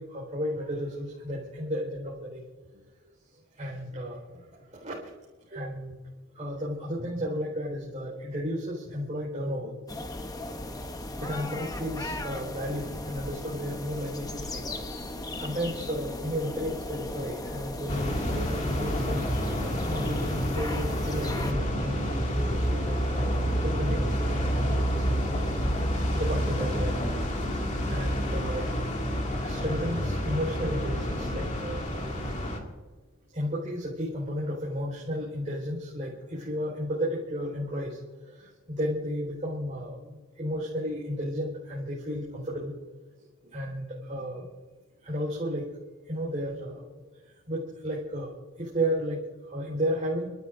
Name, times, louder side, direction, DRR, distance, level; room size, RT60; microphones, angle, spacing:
voice 1, 0.0-2.4 3.6-4.2 4.7-5.0 5.5-6.0 6.3-9.7 11.2-14.6 15.4-23.3 23.6-25.4 26.2-27.0 27.5-27.6 27.9-28.7 29.4-31.8 33.3-38.0 38.4-42.7 43.5-44.4 45.0-45.6 46.1-46.8 47.5-48.3 48.6-49.2 49.5-50.3, equal, 35° right, -5 dB, 4.7 m, -33 dB
sound 1, 9.9-21.5, left 1 dB, 20° left, 1.0 m, -37 dB
sound 2, 17.9-32.6, equal, 35° left, 2.4 m, -28 dB
29.5 x 14.0 x 2.7 m, 1.3 s
head